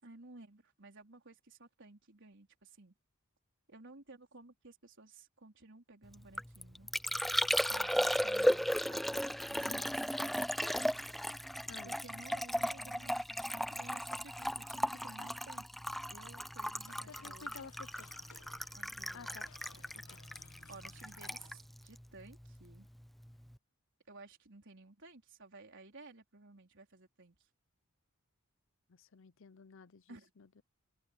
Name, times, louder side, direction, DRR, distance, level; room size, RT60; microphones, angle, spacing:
voice 1, 0.0-2.9 3.7-6.9 7.7-10.0 11.8-15.8 16.1-17.7 18.7-19.4 19.7-19.8 20.7-22.9 24.1-27.3 30.1-30.3, right 3 dB, 60° right, 4.4 m, -56 dB
Liquid, 6.1-22.8 23.0-23.6, equal, ahead, 0.4 m, -36 dB
voice 2, 11.7-12.0 17.1-18.1 19.1-19.5 20.1-20.2 28.9-30.6, left 4 dB, 65° left, 0.7 m, -53 dB
sound 1, 16.3-21.7, left 4 dB, 90° left, 1.9 m, -61 dB
open air
head